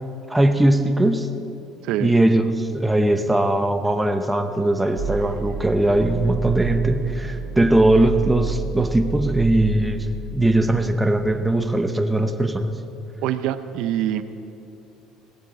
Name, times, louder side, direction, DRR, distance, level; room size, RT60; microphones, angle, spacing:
voice 1, 0.3-1.3 2.0-10.1 10.3-12.7, right 1 dB, 5° right, 7 dB, 0.7 m, -20 dB
sound 1, 5.0-10.9, right 5 dB, 80° right, 2.1 m, -30 dB
voice 2, 13.2-14.2, right 12 dB, 65° right, 11 dB, 0.7 m, -25 dB
17.0 x 8.9 x 8.2 m, 2.7 s
cardioid pair, 170°, 0 cm